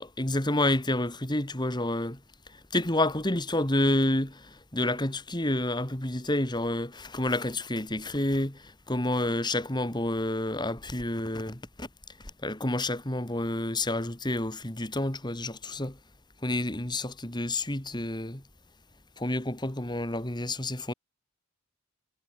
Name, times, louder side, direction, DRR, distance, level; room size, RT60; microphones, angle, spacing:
voice 1, 0.0-2.2 2.5-11.9 12.4-16.0 16.4-18.4 19.2-20.9, left 1 dB, 20° left, 2.2 m, -29 dB
head